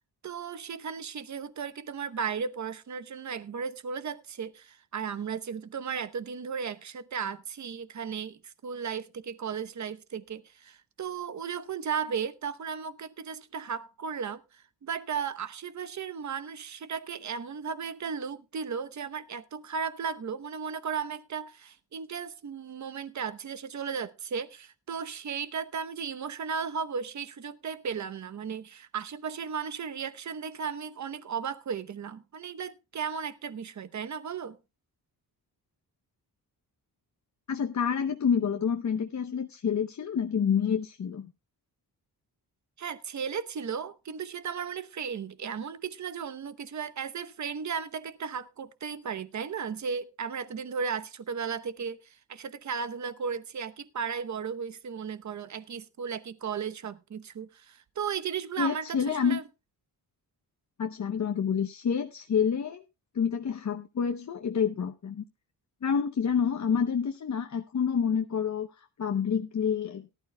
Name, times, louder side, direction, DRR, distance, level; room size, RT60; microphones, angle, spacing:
voice 1, 0.2-34.6 42.8-59.4, right 6 dB, 45° right, 0.9 m, -35 dB
voice 2, 37.5-41.3 58.6-59.4 60.8-62.8 63.1-65.2 65.8-70.1, left 7 dB, 45° left, 0.8 m, -28 dB
18.0 x 12.0 x 2.2 m
wide cardioid pair, 105°, 39 cm